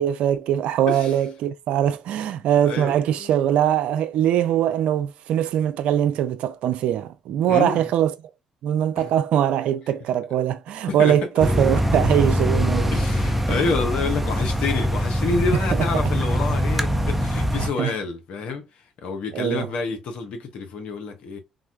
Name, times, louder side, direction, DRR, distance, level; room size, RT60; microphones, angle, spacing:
voice 1, 0.0-8.1 8.6-12.9 13.5-13.7 15.5-15.6 15.9-16.0 17.5-17.9 19.3-19.7, right 10 dB, 70° right, 0.4 m, -22 dB
voice 2, 2.6-3.3 7.5-7.9 9.0-9.1 11.0-11.2 12.9-18.7 19.0-21.4, left 4 dB, 70° left, 0.8 m, -28 dB
sound 1, 11.4-17.7, equal, 10° right, 0.7 m, -23 dB
3.6 x 2.2 x 2.3 m
hypercardioid pair, 50°, 2 cm